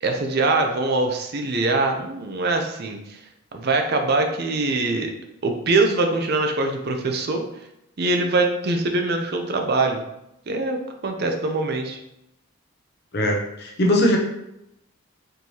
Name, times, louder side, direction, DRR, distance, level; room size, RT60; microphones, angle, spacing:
voice 1, 0.0-3.2 3.5-5.1 5.4-7.4 8.0-10.0 10.5-12.0, right 2 dB, 45° right, 4 dB, 0.5 m, -23 dB
voice 2, 13.1-14.2, left 1 dB, 45° left, 1 dB, 0.7 m, -20 dB
4.4 x 3.2 x 2.8 m, 0.84 s
head